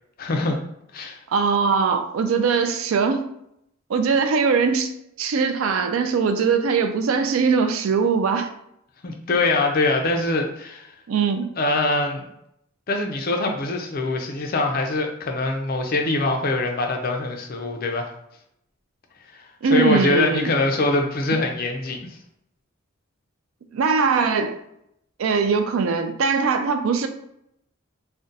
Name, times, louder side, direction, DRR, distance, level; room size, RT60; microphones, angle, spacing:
voice 1, 0.2-0.6 0.9-1.2 9.0-10.9 11.6-12.3 12.9-18.1 19.3-19.4 19.7-22.0, left 2 dB, 45° left, 3 dB, 0.5 m, -23 dB
voice 2, 1.3-3.3 3.9-4.9 5.2-8.5 11.1-11.5 19.6-20.5 23.7-24.6 25.2-27.1, right 5 dB, 85° right, 8 dB, 0.4 m, -21 dB
2.6 x 2.1 x 3.8 m, 0.77 s
head